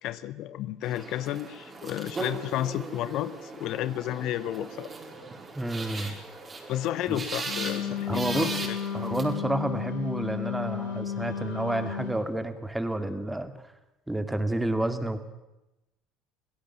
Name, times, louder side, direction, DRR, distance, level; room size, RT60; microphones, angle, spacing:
voice 1, 0.0-4.9 5.9-6.2 6.7-8.8, left 13 dB, 60° left, 16 dB, 0.9 m, -32 dB
sound 1, 0.8-9.2, right 3 dB, 30° right, 5.0 m, -39 dB
voice 2, 5.6-6.1 7.1-7.2 8.1-8.6 8.9-13.5 14.1-15.2, right 1 dB, 10° right, 9 dB, 2.3 m, -30 dB
Wind instrument woodwind instrument, 7.4-12.2, left 8 dB, 85° left, 3.9 m, -33 dB
24.5 x 16.5 x 7.4 m, 0.95 s
hypercardioid pair, 70°, 0 cm